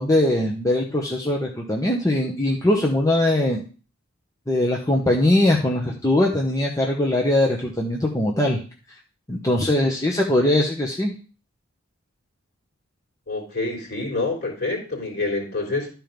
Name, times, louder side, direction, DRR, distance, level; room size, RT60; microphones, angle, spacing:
voice 1, 0.0-3.6 4.5-8.6 9.3-11.1, left 1 dB, 15° left, -1 dB, 1.0 m, -21 dB
voice 2, 13.3-15.9, left 3 dB, 50° left, 0 dB, 3.4 m, -27 dB
12.5 x 4.6 x 5.2 m, 0.37 s
head